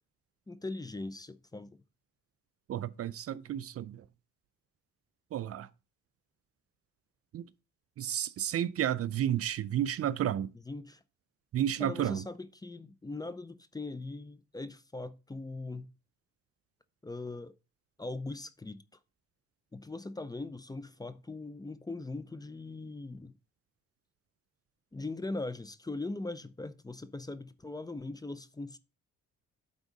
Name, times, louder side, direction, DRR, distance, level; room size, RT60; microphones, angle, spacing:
voice 1, 0.5-1.8 10.5-11.0 11.8-15.9 17.0-17.5 18.0-18.8 19.7-23.3 24.9-28.8, left 2 dB, 15° left, 0.5 m, -40 dB
voice 2, 2.7-4.0 5.3-5.7 7.3-7.4 8.0-10.5 11.5-12.2, right 11 dB, 50° right, 0.5 m, -31 dB
9.1 x 3.7 x 5.2 m
cardioid pair, 90°, 30 cm